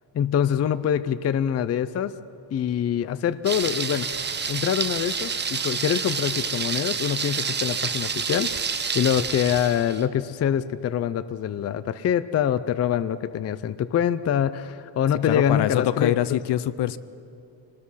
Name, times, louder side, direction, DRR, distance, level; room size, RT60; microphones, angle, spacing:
voice 1, 0.1-2.1 2.5-4.1 4.5-8.5 8.9-16.4, left 9 dB, 35° left, 14 dB, 0.4 m, -25 dB
Thunder, 3.4-10.0, right 6 dB, 25° right, 0.7 m, -28 dB
voice 2, 15.3-17.0, left 12 dB, 70° left, 17 dB, 0.7 m, -24 dB
26.0 x 19.5 x 5.6 m, 2.7 s
wide cardioid pair, 175°, 43 cm